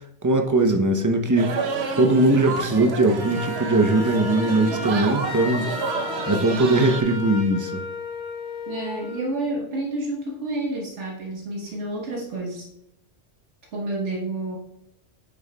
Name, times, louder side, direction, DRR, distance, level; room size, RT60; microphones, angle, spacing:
voice 1, 0.2-1.5 2.0-5.7 6.3-7.8, right 2 dB, 25° right, 4 dB, 0.4 m, -20 dB
sound 1, 1.4-7.0, right 4 dB, 65° right, 1.0 m, -30 dB
Wind instrument woodwind instrument, 3.2-9.3, left 2 dB, 25° left, 2.2 m, -33 dB
voice 2, 6.4-7.0 8.7-12.7 13.7-14.6, right 2 dB, 80° right, -1 dB, 1.4 m, -30 dB
8.6 x 6.9 x 2.2 m, 0.81 s
omnidirectional pair, 1.2 m